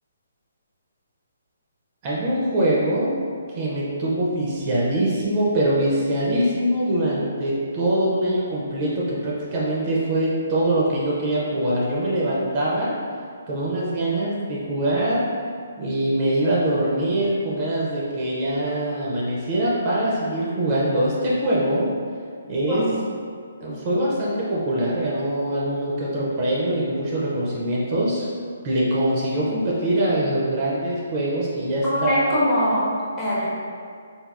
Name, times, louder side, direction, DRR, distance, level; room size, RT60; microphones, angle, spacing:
voice 1, 2.0-3.1 3.6-12.9 13.5-15.2 15.8-21.9 22.5-22.8 23.6-28.3 28.6-32.3, right 1 dB, 30° right, -6 dB, 0.5 m, -23 dB
voice 2, 31.8-33.5, equal, 15° left, -9 dB, 0.7 m, -22 dB
3.3 x 2.3 x 2.4 m, 2.2 s
hypercardioid pair, 155°, 0 cm